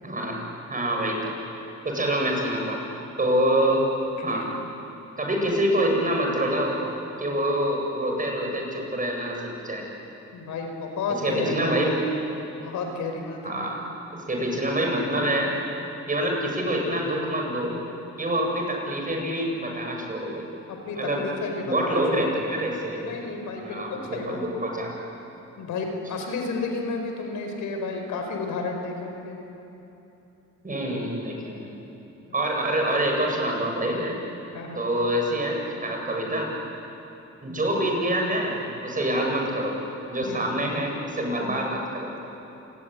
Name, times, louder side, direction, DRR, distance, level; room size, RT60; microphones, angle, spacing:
voice 1, 0.0-0.4 0.7-1.3 1.8-2.8 3.2-3.9 4.2-4.4 5.2-6.8 7.2-9.8 11.2-12.0 13.4-15.5 16.1-17.8 18.2-20.4 20.9-21.2 21.6-23.0 23.6-24.9 30.6-31.8 32.3-34.2 34.8-36.5 37.4-39.8 40.1-42.1, right 1 dB, 25° right, 0 dB, 7.8 m, -26 dB
voice 2, 4.2-4.5 10.3-11.9 12.6-13.8 20.7-22.3 23.0-24.4 25.6-29.4 34.5-34.8 40.2-40.5, left 3 dB, 80° left, 3 dB, 5.0 m, -32 dB
29.0 x 21.0 x 9.6 m, 3.0 s
cardioid pair, 90°, 30 cm